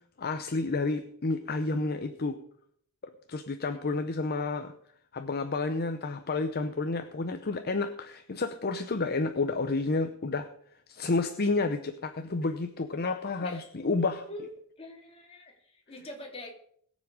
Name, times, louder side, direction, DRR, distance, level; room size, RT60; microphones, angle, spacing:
voice 1, 0.2-2.4 3.3-4.7 5.1-10.5 10.9-14.2, left 3 dB, 45° left, 8 dB, 0.8 m, -30 dB
voice 2, 14.8-16.5, left 1 dB, 25° left, 0 dB, 3.1 m, -44 dB
20.5 x 7.4 x 5.0 m, 0.65 s
head